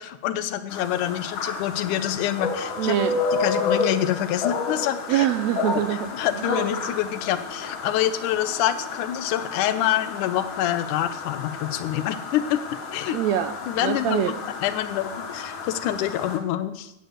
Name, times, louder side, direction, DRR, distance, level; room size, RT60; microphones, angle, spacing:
voice 1, 0.0-3.0 3.4-5.3 6.1-13.2 13.7-16.9, left 12 dB, 85° left, 12 dB, 2.2 m, -26 dB
sound 1, 0.7-16.4, left 4 dB, 50° left, 1.9 m, -31 dB
voice 2, 2.8-3.2 5.1-6.1 6.3-6.6 13.1-13.5 13.8-14.3, right 11 dB, 75° right, 10 dB, 1.7 m, -24 dB
9.8 x 8.0 x 7.8 m, 0.86 s
omnidirectional pair, 3.5 m